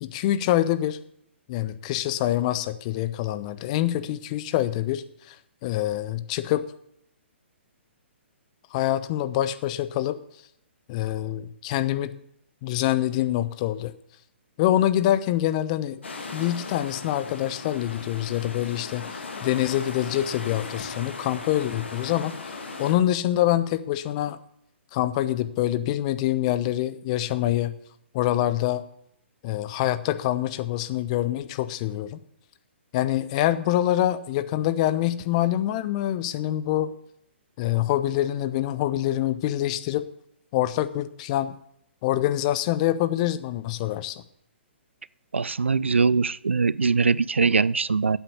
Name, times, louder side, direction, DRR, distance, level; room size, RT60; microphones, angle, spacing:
voice 1, 0.0-1.0 1.5-5.4 5.6-6.7 8.7-10.2 10.9-12.2 12.6-13.9 14.6-16.0 16.3-24.4 24.9-27.8 28.1-28.8 29.4-32.2 32.9-36.9 37.6-40.1 40.5-41.5 42.0-44.2, left 13 dB, 35° left, 13 dB, 0.8 m, -25 dB
sound 1, 16.0-22.9, left 3 dB, 70° left, 2.3 m, -37 dB
voice 2, 45.3-48.2, right 4 dB, 80° right, 22 dB, 0.4 m, -22 dB
10.0 x 8.4 x 8.1 m, 0.73 s
figure-of-eight pair, 125°, 6 cm